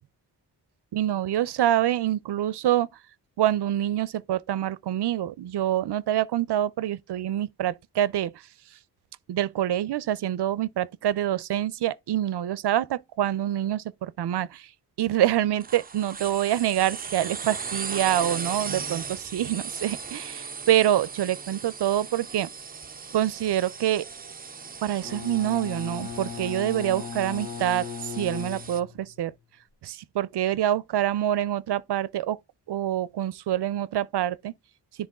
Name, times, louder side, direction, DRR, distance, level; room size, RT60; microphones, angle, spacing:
voice 1, 0.9-2.9 3.4-8.3 9.3-14.7 15.0-22.5 23.1-24.1 24.8-29.3 29.8-32.4 32.7-34.5, right 12 dB, 70° right, 0.6 m, -26 dB
sound 1, 15.6-28.8, right 5 dB, 20° right, 0.4 m, -37 dB
Bowed string instrument, 25.0-29.2, left 7 dB, 80° left, 1.5 m, -37 dB
10.0 x 3.5 x 3.6 m
cardioid pair, 55°, 41 cm